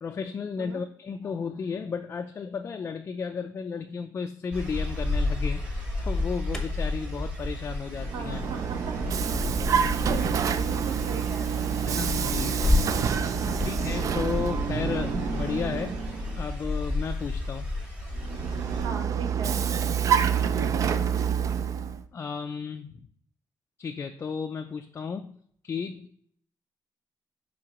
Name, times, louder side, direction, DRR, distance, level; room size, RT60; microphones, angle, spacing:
voice 1, 0.0-8.4 11.8-12.6 13.6-16.0 16.3-17.7 22.1-23.0 23.8-25.4 25.6-26.1, left 6 dB, 35° left, 5 dB, 0.3 m, -33 dB
sound 1, 4.5-18.9, left 2 dB, 15° right, 1.6 m, -33 dB
Alarm, 6.1-12.9, left 2 dB, 5° left, 1.0 m, -34 dB
Vehicle, 7.9-16.5 18.1-22.0, right 7 dB, 45° right, 0.4 m, -27 dB
voice 2, 8.1-9.0 9.7-11.7 13.3-13.8 18.7-19.6, right 4 dB, 80° right, 4 dB, 1.2 m, -38 dB
9.9 x 3.8 x 2.9 m, 0.63 s
wide cardioid pair, 165°, 8 cm